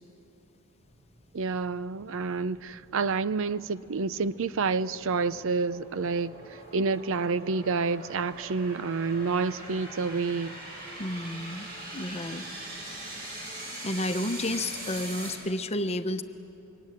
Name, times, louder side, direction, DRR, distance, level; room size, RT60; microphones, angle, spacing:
sound 1, 0.8-15.3, right 1 dB, 45° right, 7.3 m, -43 dB
voice 1, 1.3-10.5, right 4 dB, 65° right, 0.6 m, -29 dB
voice 2, 11.0-11.7 11.9-12.4 13.4-16.2, left 1 dB, 30° left, 0.9 m, -31 dB
27.0 x 24.0 x 8.9 m
head